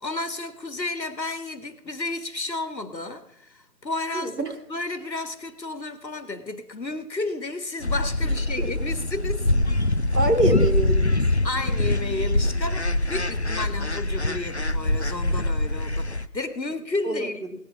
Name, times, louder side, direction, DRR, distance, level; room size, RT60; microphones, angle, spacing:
voice 1, 0.0-4.4 4.7-9.5 11.4-17.6, left 2 dB, 90° left, 11 dB, 1.9 m, -32 dB
voice 2, 4.1-4.5 8.6-8.7 10.1-11.2 17.0-17.6, right 1 dB, 70° right, 5 dB, 2.9 m, -25 dB
sound 1, 7.8-16.3, left 1 dB, 45° left, 0.5 m, -24 dB
18.0 x 8.3 x 6.9 m, 0.76 s
figure-of-eight pair, 160°, 50 cm